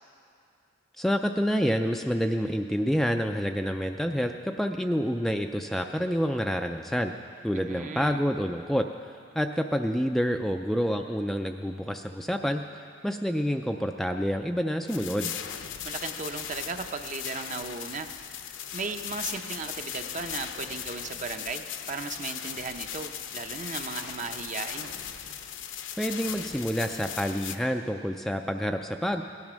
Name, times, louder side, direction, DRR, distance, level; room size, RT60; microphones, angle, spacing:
voice 1, 1.0-7.1 7.4-8.9 9.3-12.6 13.0-15.3 26.0-29.2, equal, ahead, 4 dB, 0.3 m, -28 dB
voice 2, 7.5-8.2 15.8-18.1 18.7-24.9, right 4 dB, 40° right, 7 dB, 0.7 m, -36 dB
sound 1, 14.9-27.6, left 9 dB, 70° left, 0.7 m, -38 dB
17.5 x 10.5 x 6.2 m, 2.5 s
head